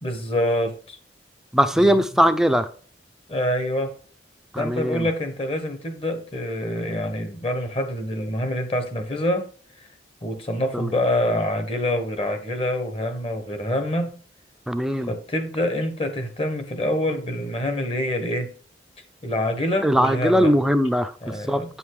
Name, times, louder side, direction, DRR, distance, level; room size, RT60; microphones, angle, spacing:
voice 1, 0.0-1.0 1.7-2.0 3.3-3.9 4.6-9.5 9.8-9.9 10.2-14.1 14.9-18.5 19.2-20.5 21.2-21.7, left 1 dB, 30° left, 1.4 m, -26 dB
voice 2, 1.5-2.7 4.5-5.1 10.7-10.9 14.7-15.1 19.8-21.1 21.5-21.6, equal, 5° right, 0.6 m, -20 dB
8.8 x 5.5 x 4.9 m
head